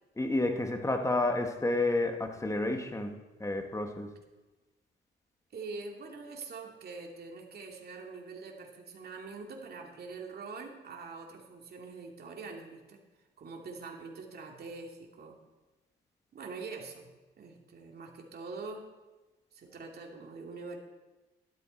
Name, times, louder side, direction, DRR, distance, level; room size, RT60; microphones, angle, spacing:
voice 1, 0.2-4.1, left 2 dB, 15° left, 5 dB, 1.6 m, -30 dB
voice 2, 5.5-13.0 13.4-15.4 16.3-18.9 19.5-20.8, right 4 dB, 55° right, 1 dB, 2.5 m, -44 dB
12.5 x 11.5 x 4.5 m, 1.1 s
cardioid pair, 90°, 20 cm